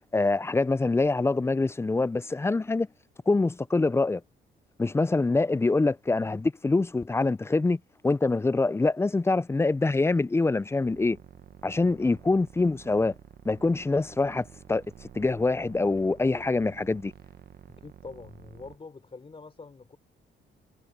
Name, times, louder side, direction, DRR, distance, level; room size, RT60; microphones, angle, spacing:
voice 1, 0.1-2.9 3.3-4.2 4.8-11.2 11.6-13.1 13.5-14.8 15.1-17.1, left 3 dB, 15° left, 0.4 m, -25 dB
sound 1, 10.8-18.8, right 9 dB, 50° right, 1.1 m, -50 dB
voice 2, 17.7-20.0, left 4 dB, 30° left, 3.7 m, -45 dB
cardioid pair, 90°, 20 cm